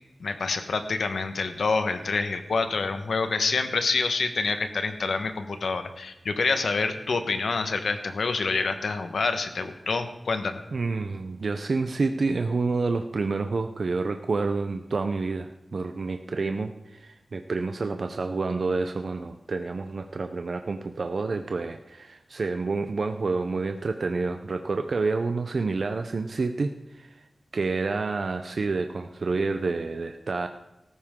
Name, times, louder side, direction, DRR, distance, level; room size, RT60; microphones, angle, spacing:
voice 1, 0.2-10.6, left 4 dB, 85° left, 8 dB, 1.3 m, -27 dB
voice 2, 10.7-27.2 27.5-30.5, right 3 dB, 65° right, 6 dB, 0.7 m, -28 dB
17.0 x 14.0 x 3.8 m, 0.92 s
wide cardioid pair, 90°, 0 cm